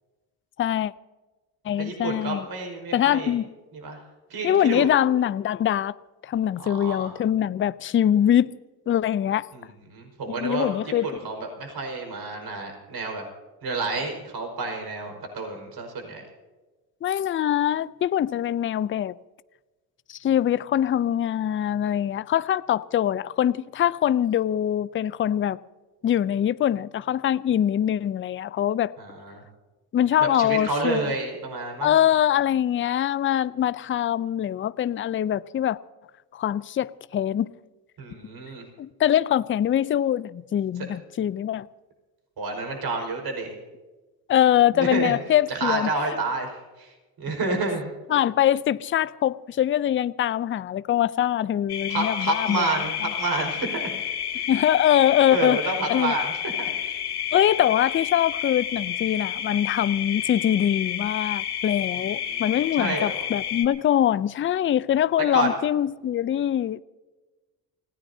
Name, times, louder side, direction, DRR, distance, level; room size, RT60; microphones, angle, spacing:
voice 1, 0.6-0.9 1.6-2.5 2.9-3.5 4.4-6.0 6.2-8.5 8.9-9.5 10.3-11.1 17.0-19.1 20.1-25.6 26.0-28.9 29.9-31.0 31.8-35.8 36.3-37.5 38.8-41.7 44.3-45.9 48.1-52.7 54.5-55.6 55.9-56.1 57.3-66.8, left 10 dB, 25° left, 0.5 m, -23 dB
voice 2, 1.8-3.3 3.7-4.0 4.3-4.9 6.6-7.1 9.5-10.7 11.0-13.2 13.6-16.2 29.0-29.4 30.4-32.0 38.0-38.6 42.4-43.5 44.7-45.2 45.5-47.9 51.9-54.4 55.3-57.0 62.0-62.4 62.7-63.3 65.3-65.6, right 3 dB, 45° right, 5.0 m, -30 dB
sound 1, 51.7-63.7, left 10 dB, 50° left, 3.0 m, -30 dB
29.0 x 16.5 x 2.8 m
hypercardioid pair, 65°, 49 cm